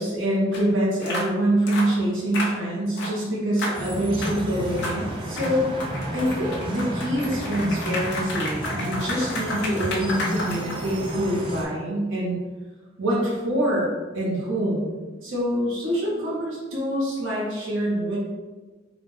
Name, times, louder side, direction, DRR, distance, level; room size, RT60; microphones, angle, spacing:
voice 1, 0.0-5.7 6.1-12.4 13.0-13.9 14.1-18.2, right 1 dB, 80° right, -6 dB, 1.0 m, -25 dB
sound 1, 0.5-0.6 1.0-1.3 1.7-1.9 2.3-2.6 3.0-3.2 3.6-3.8 4.2-4.4 4.8-5.0 5.4-11.1, left 1 dB, 60° left, 0.6 m, -31 dB
sound 2, 3.7-11.6, right 1 dB, 25° right, 0.6 m, -32 dB
3.6 x 2.4 x 3.7 m, 1.3 s
head